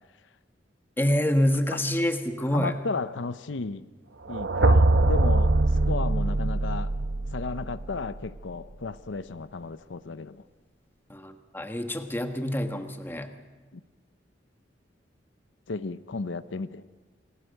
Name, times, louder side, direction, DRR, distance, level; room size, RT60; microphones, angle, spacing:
voice 1, 1.0-2.7 6.2-6.3 11.1-13.3, left 1 dB, 10° left, 1.4 m, -27 dB
voice 2, 2.5-3.9 4.3-6.9 7.3-10.4 13.7-13.8 15.7-16.8, left 3 dB, 85° left, 0.7 m, -34 dB
sound 1, 4.3-8.3, right 2 dB, 80° right, 0.9 m, -23 dB
28.0 x 20.0 x 6.6 m
head